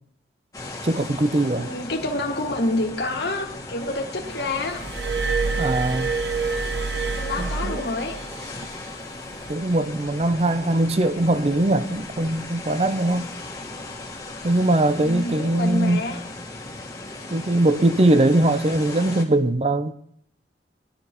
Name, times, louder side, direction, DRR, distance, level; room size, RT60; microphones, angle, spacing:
sound 1, 0.5-19.2, left 2 dB, 20° left, 1.7 m, -37 dB
voice 1, 0.8-1.7 5.6-6.1 7.4-7.8 9.5-13.3 14.4-16.0 17.3-19.9, right 1 dB, 35° right, 0.6 m, -21 dB
voice 2, 1.6-4.8 7.1-8.2 14.9-16.2, left 2 dB, 70° left, 2.0 m, -28 dB
Glass, 4.7-8.3 9.3-9.5, right 4 dB, 80° right, 0.7 m, -27 dB
21.0 x 12.0 x 3.0 m
head